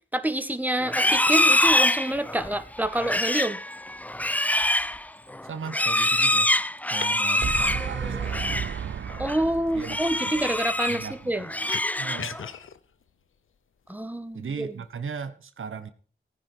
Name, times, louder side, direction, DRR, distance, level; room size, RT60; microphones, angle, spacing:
voice 1, 0.1-3.6 9.2-11.4 13.9-14.7, right 1 dB, 10° right, 10 dB, 1.6 m, -27 dB
Livestock farm animals working animals, 0.8-8.8 9.1-9.4 9.8-11.1 11.4-12.5, left 1 dB, 5° left, 0.6 m, -25 dB
voice 2, 5.4-6.5 6.9-8.5 9.7-10.6 10.8-11.5 12.0-12.4 14.3-15.9, right 6 dB, 85° right, 10 dB, 1.3 m, -37 dB
sound 1, 6.5-14.9, left 7 dB, 85° left, 0.8 m, -42 dB
sound 2, 7.3-11.2, right 7 dB, 70° right, 0.6 m, -33 dB
16.0 x 9.7 x 4.6 m, 0.42 s
cardioid pair, 50°, 20 cm